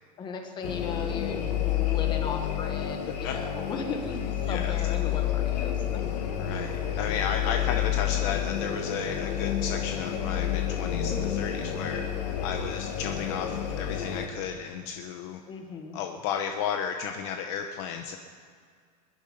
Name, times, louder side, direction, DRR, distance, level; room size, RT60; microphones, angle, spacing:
voice 1, 0.2-6.0 15.5-16.0, left 5 dB, 20° left, 4 dB, 1.5 m, -36 dB
sound 1, 0.6-14.2, left 10 dB, 80° left, 2.1 m, -29 dB
voice 2, 4.4-4.8 6.4-15.4 15.9-18.2, left 7 dB, 45° left, 5 dB, 0.9 m, -34 dB
21.5 x 10.5 x 5.3 m, 2.1 s
supercardioid pair, 165°, 21 cm